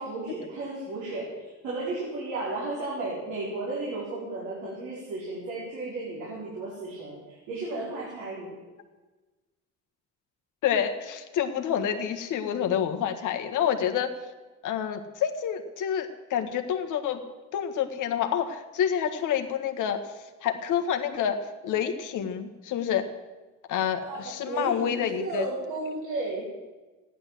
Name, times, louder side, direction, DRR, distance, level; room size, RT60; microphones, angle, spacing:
voice 1, 0.0-8.6 24.0-26.5, right 2 dB, 90° right, -6 dB, 4.9 m, -34 dB
voice 2, 10.6-14.1 14.6-17.2 17.5-20.0 20.4-21.4 21.6-23.0 23.7-25.4, left 9 dB, 85° left, 6 dB, 1.7 m, -28 dB
15.0 x 11.0 x 7.7 m, 1.2 s
cardioid pair, 90°, 30 cm